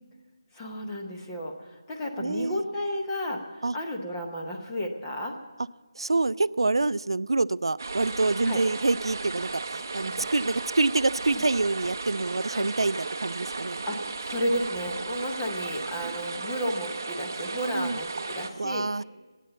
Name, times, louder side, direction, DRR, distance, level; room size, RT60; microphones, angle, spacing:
voice 1, 0.5-5.3 8.5-8.6 10.1-10.2 11.3-11.4 12.5-12.7 13.9-18.9, equal, 10° left, 0 dB, 0.7 m, -32 dB
voice 2, 2.2-2.6 3.6-3.8 6.0-13.8 17.7-18.0 18.6-19.0, right 3 dB, 85° right, 18 dB, 0.3 m, -26 dB
sound 1, 7.8-18.5, right 3 dB, 35° right, 0.7 m, -35 dB
14.0 x 9.1 x 7.8 m, 1.3 s
figure-of-eight pair, 175°, 3 cm